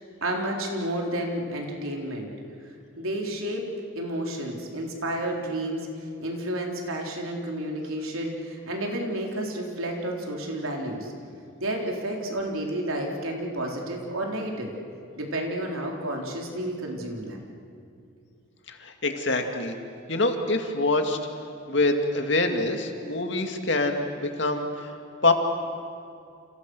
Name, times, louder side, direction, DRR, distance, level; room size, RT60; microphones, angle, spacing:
voice 1, 0.2-2.3 3.0-3.7 4.0-11.1 11.6-14.7 15.2-17.4, right 1 dB, 85° right, 0 dB, 4.0 m, -31 dB
voice 2, 18.7-19.7 20.1-21.2 21.7-25.3, left 2 dB, 55° left, 4 dB, 2.4 m, -25 dB
30.0 x 28.0 x 6.4 m, 2.5 s
head